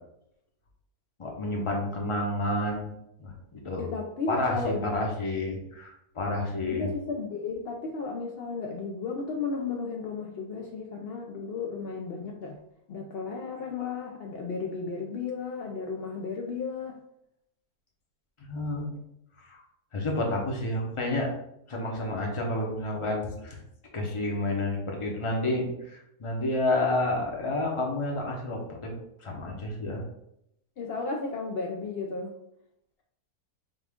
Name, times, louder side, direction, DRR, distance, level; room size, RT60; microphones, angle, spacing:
voice 1, 1.2-2.9 3.2-3.8 4.3-6.9 18.5-18.9 19.4-19.6 19.9-21.3 21.7-23.6 23.9-28.9 29.2-30.0, left 1 dB, 30° left, 0 dB, 0.6 m, -30 dB
voice 2, 3.8-5.1 6.7-12.6 12.9-17.0 30.8-32.3, left 4 dB, 80° left, 0 dB, 0.5 m, -34 dB
5.5 x 2.4 x 3.5 m, 0.79 s
omnidirectional pair, 1.6 m